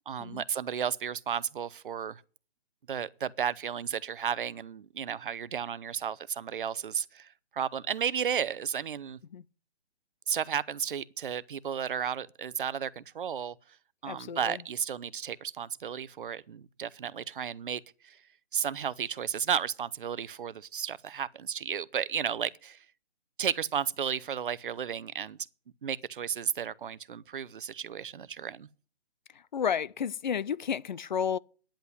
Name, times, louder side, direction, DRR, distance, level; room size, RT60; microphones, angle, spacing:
voice 1, 0.1-2.2 2.9-7.3 7.5-9.2 10.3-13.5 14.0-18.2 18.5-22.8 23.4-25.4 25.8-28.7, right 8 dB, 55° right, 0.8 m, -33 dB
voice 2, 14.1-14.6 29.3-31.4, left 7 dB, 45° left, 0.5 m, -32 dB
10.0 x 8.2 x 9.5 m
hypercardioid pair, 150°, 32 cm